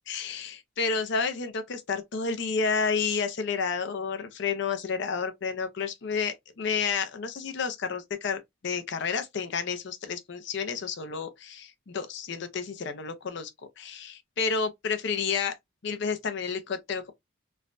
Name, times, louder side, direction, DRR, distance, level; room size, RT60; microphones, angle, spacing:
voice 1, 0.1-13.5 13.8-15.5 15.8-17.1, left 5 dB, 55° left, 0.5 m, -30 dB
3.1 x 2.1 x 2.4 m
head